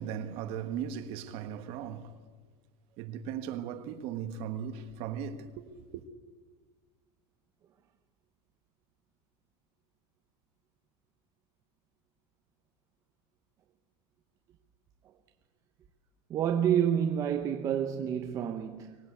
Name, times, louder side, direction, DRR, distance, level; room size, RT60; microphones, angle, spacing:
voice 1, 0.0-2.1 3.0-6.0, right 8 dB, 40° right, 1.4 m, -37 dB
voice 2, 16.3-19.0, right 9 dB, 20° right, 0.8 m, -28 dB
24.5 x 19.0 x 8.3 m
supercardioid pair, 180°, 15 cm